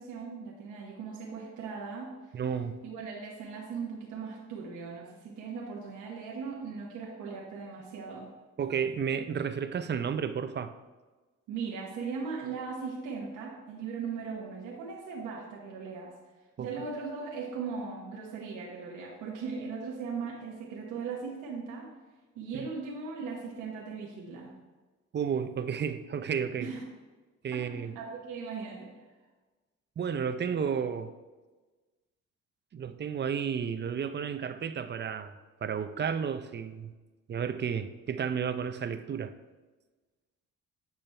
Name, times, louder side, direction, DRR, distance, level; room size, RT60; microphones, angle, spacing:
voice 1, 0.0-2.2 2.8-8.3 11.5-16.2 16.6-21.9 22.3-24.5 26.6-26.8 27.5-28.9, right 5 dB, 85° right, -2 dB, 1.2 m, -38 dB
voice 2, 2.3-2.8 8.6-10.7 16.6-16.7 22.5-22.7 25.1-26.7 27.4-27.9 30.0-31.1 32.7-35.3 35.6-36.9 37.3-39.3, right 7 dB, 35° right, 10 dB, 0.5 m, -32 dB
8.8 x 5.9 x 3.3 m, 1.3 s
cardioid pair, 90°, 30 cm